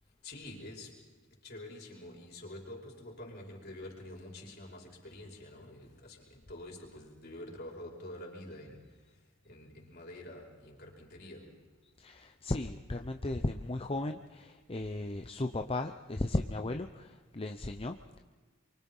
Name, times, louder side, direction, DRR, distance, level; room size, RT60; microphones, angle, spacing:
voice 1, 0.2-1.0 1.3-11.7 14.0-14.1, left 1 dB, 55° left, -1 dB, 5.4 m, -47 dB
voice 2, 12.0-18.0, left 2 dB, 30° left, 5 dB, 0.8 m, -35 dB
28.0 x 24.5 x 5.6 m, 1.4 s
head